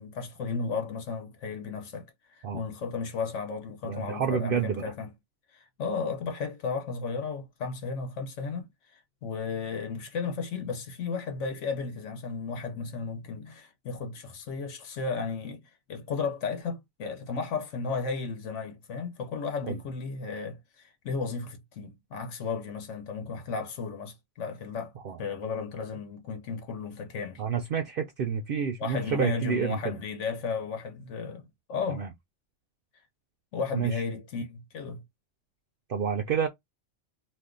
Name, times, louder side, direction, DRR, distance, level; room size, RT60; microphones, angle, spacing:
voice 1, 0.0-5.1 5.5-15.6 15.9-24.9 25.2-27.4 28.8-32.1 33.5-35.0, left 5 dB, 80° left, 1.1 m, -34 dB
voice 2, 3.8-4.9 19.6-19.8 25.0-25.2 27.4-30.0 31.9-32.1 33.7-34.0 35.9-36.5, right 7 dB, 60° right, 0.6 m, -29 dB
2.6 x 2.3 x 3.6 m
omnidirectional pair, 1.2 m